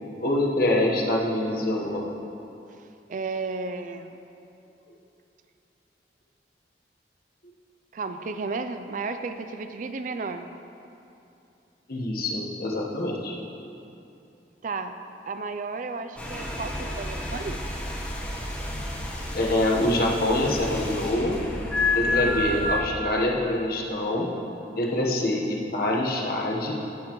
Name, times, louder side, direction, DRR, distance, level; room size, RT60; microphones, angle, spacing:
voice 1, 0.2-2.1 11.9-13.3 19.3-21.4 21.9-24.3 24.7-26.7, left 1 dB, 55° left, -2 dB, 1.2 m, -25 dB
voice 2, 3.1-4.2 7.9-10.5 14.6-14.9 15.3-17.6 22.1-22.4, right 4 dB, 45° right, 9 dB, 0.4 m, -33 dB
sound 1, 16.2-22.8, left 2 dB, 5° left, 1.1 m, -30 dB
16.0 x 7.3 x 3.1 m, 2.7 s
head